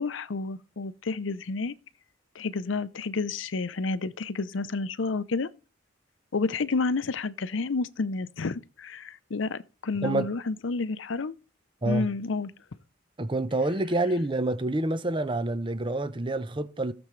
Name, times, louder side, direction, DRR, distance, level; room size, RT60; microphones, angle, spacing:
voice 1, 0.0-1.7 2.3-5.5 6.3-11.4 11.9-12.5, left 3 dB, 80° left, 0.6 m, -30 dB
voice 2, 13.2-16.9, right 2 dB, 25° right, 0.7 m, -27 dB
17.0 x 6.9 x 3.2 m
head